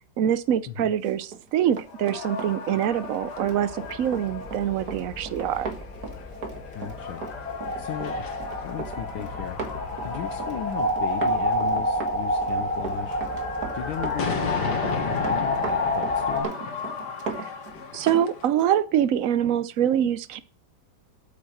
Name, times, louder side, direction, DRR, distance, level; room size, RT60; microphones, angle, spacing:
voice 1, 0.2-5.7 17.4-17.5 17.9-20.4, right 10 dB, 75° right, 14 dB, 0.7 m, -24 dB
Run, 1.2-18.3 18.6-18.7, right 5 dB, 50° right, 1.9 m, -37 dB
sound 1, 1.9-18.5, left 5 dB, 60° left, 1.7 m, -37 dB
sound 2, 3.2-16.4, left 1 dB, 5° left, 1.7 m, -29 dB
voice 2, 6.7-7.3 7.8-9.6 10.0-13.2 13.7-16.5, left 10 dB, 75° left, 7 dB, 1.5 m, -36 dB
8.7 x 7.0 x 6.5 m, 0.38 s
omnidirectional pair, 2.2 m